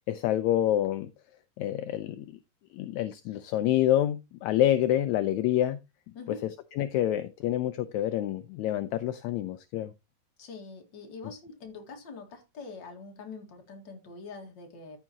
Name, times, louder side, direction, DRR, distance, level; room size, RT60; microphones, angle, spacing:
voice 1, 0.1-1.1 1.6-2.3 2.7-5.8 6.8-9.9, left 12 dB, 80° left, 1.8 m, -27 dB
voice 2, 6.1-6.5 10.4-15.0, left 4 dB, 40° left, 2.3 m, -44 dB
13.5 x 5.7 x 2.9 m
omnidirectional pair, 3.5 m